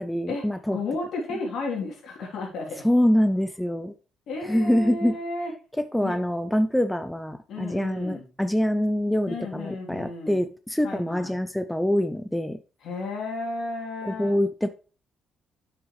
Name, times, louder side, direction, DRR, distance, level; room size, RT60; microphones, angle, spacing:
voice 1, 0.0-0.8 2.8-3.9 4.4-5.2 5.8-12.6 14.0-14.7, equal, 5° left, 10 dB, 0.5 m, -25 dB
voice 2, 0.7-2.9 4.3-5.5 6.0-6.2 7.5-8.3 9.3-10.4 10.8-11.3 12.8-14.4, left 3 dB, 70° left, 0 dB, 3.1 m, -33 dB
8.6 x 6.1 x 3.2 m, 0.35 s
cardioid pair, 105°, 0 cm